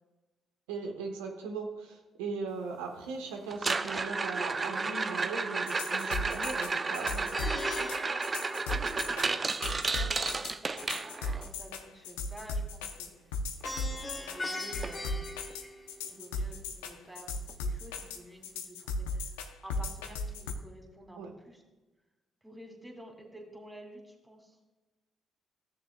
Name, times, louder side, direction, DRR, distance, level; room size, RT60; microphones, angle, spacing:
voice 1, 0.7-7.9 21.1-21.4, right 4 dB, 85° right, 2 dB, 1.0 m, -39 dB
sound 1, 3.5-11.5 13.7-13.8 14.1-14.4 14.8-14.9 15.5-15.6 17.5-17.6, right 4 dB, 35° right, 0.5 m, -32 dB
sound 2, 5.7-20.5, left 3 dB, 90° left, 0.6 m, -36 dB
Plucked string instrument, 7.3-9.5 13.6-16.2, left 1 dB, 35° left, 1.7 m, -40 dB
voice 2, 8.7-9.5 9.8-10.9 11.3-13.1 13.7-15.3 16.0-21.6 22.4-24.6, right 1 dB, 15° right, 1 dB, 2.4 m, -50 dB
15.0 x 6.8 x 2.2 m, 1.2 s
hypercardioid pair, 50°, 0 cm